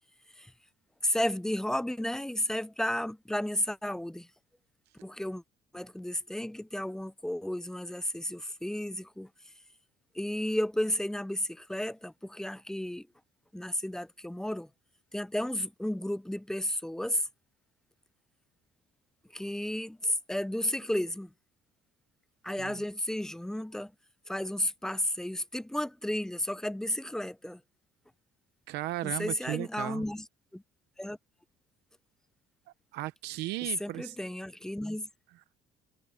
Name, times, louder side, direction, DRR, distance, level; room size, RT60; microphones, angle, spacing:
voice 1, 1.0-4.3 5.0-5.4 5.7-9.3 10.1-13.1 13.5-14.7 15.1-17.2 19.3-21.3 22.4-23.9 24.3-27.6 29.0-30.3 30.5-30.6 31.0-31.2 33.8-35.1, left 1 dB, 5° left, 0.5 m, -33 dB
voice 2, 28.7-30.0 32.9-34.2, right 17 dB, 90° right, 0.7 m, -36 dB
cardioid pair, 110°, 17 cm